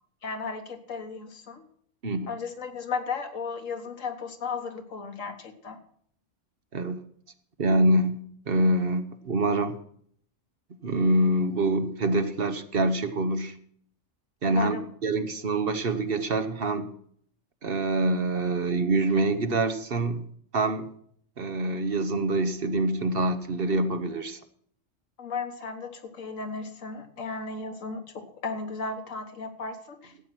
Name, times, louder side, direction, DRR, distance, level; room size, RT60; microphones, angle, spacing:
voice 1, 0.2-1.6 2.3-5.8 14.4-14.8 25.2-30.1, left 4 dB, 80° left, 6 dB, 1.8 m, -35 dB
voice 2, 7.6-8.2 8.5-9.8 10.8-13.5 14.4-14.8 15.0-16.9 17.6-20.2 20.5-20.9 21.4-24.4, right 2 dB, 50° right, 9 dB, 1.1 m, -25 dB
14.0 x 8.5 x 5.9 m, 0.62 s
omnidirectional pair, 1.3 m